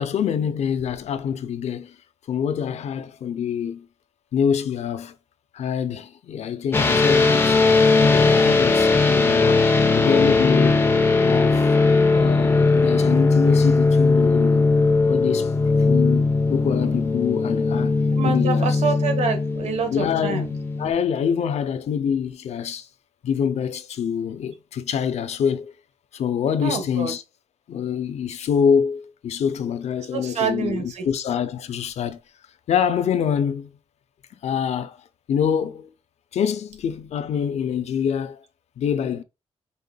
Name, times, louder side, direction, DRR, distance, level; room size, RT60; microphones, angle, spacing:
voice 1, 0.0-1.9 2.3-3.9 4.3-5.1 5.5-7.6 8.0-9.6 9.9-10.9 11.2-11.7 12.1-14.7 15.1-15.5 15.8-17.9 18.2-18.8 19.9-22.9 23.2-25.7 26.1-27.2 27.7-32.2 32.7-33.7 34.4-35.0 35.3-35.9 36.3-38.4 38.8-39.2, left 7 dB, 80° left, 0.6 m, -25 dB
sound 1, 6.7-20.9, left 3 dB, 20° left, 0.7 m, -19 dB
voice 2, 18.1-20.5 26.6-27.1 30.1-31.1, right 5 dB, 90° right, 1.3 m, -26 dB
5.5 x 3.7 x 2.3 m
wide cardioid pair, 165°, 11 cm